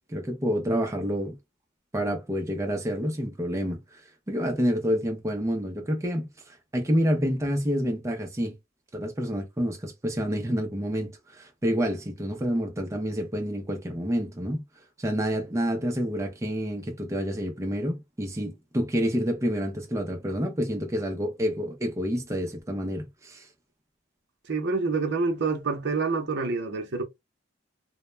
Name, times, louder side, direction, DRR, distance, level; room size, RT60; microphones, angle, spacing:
voice 1, 0.1-1.4 1.9-4.0 4.3-8.5 8.9-14.6 15.0-23.5, equal, 15° right, 0.5 m, -28 dB
voice 2, 24.5-27.0, right 4 dB, 60° right, 0.6 m, -27 dB
2.1 x 2.1 x 3.1 m
head